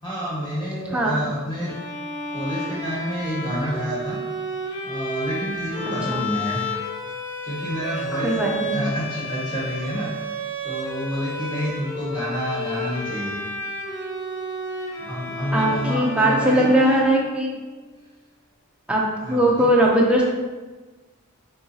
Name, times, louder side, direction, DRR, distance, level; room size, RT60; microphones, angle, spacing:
voice 1, 0.0-1.7 2.3-4.2 4.8-6.8 7.4-13.4 15.0-16.7 19.2-19.7, equal, 20° left, -7 dB, 1.4 m, -29 dB
Bowed string instrument, 1.6-17.7, equal, 55° left, 1.2 m, -32 dB
voice 2, 5.8-6.2 8.1-8.8 15.5-17.6 18.9-19.0 19.3-20.2, right 1 dB, 5° right, -2 dB, 0.5 m, -20 dB
4.3 x 3.6 x 2.7 m, 1.3 s
head